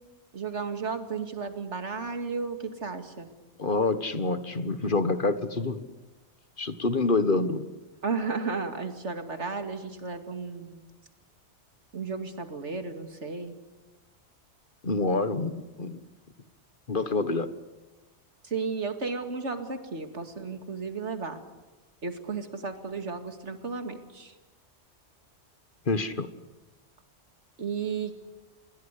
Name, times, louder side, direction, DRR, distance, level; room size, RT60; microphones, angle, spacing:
voice 1, 0.3-3.3 8.0-10.8 11.9-13.6 18.4-21.4 22.0-24.3 27.6-28.1, right 4 dB, 85° right, 7 dB, 2.6 m, -33 dB
voice 2, 3.6-5.8 6.6-7.6 14.8-16.0 16.9-17.5 25.8-26.3, left 3 dB, 50° left, 12 dB, 1.5 m, -27 dB
27.5 x 21.5 x 8.4 m, 1.1 s
omnidirectional pair, 1.2 m